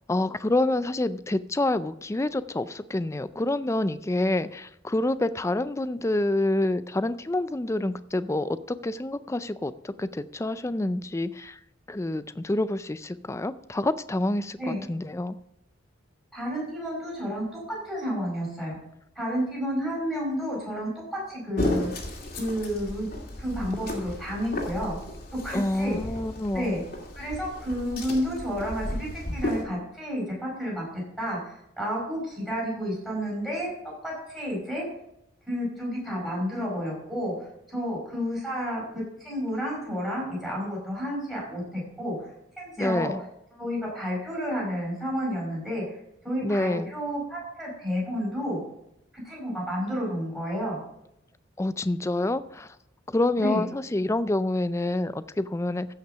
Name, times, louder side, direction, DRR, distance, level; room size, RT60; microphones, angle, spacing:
voice 1, 0.1-11.6 11.9-15.4 25.5-26.8 42.8-43.2 46.4-46.9 51.6-52.7 53.1-55.9, left 2 dB, 15° left, 14 dB, 0.4 m, -27 dB
voice 2, 16.3-18.8 19.1-21.9 22.4-23.1 23.4-25.0 25.3-26.0 26.5-26.8 27.2-33.7 34.0-34.8 35.5-37.3 37.7-42.2 42.6-43.1 43.5-45.8 46.2-48.6 49.2-50.8 53.4-53.7, equal, ahead, -4 dB, 5.0 m, -31 dB
sound 1, 21.6-29.6, left 1 dB, 50° left, 2.5 m, -34 dB
15.0 x 5.8 x 5.6 m, 0.80 s
head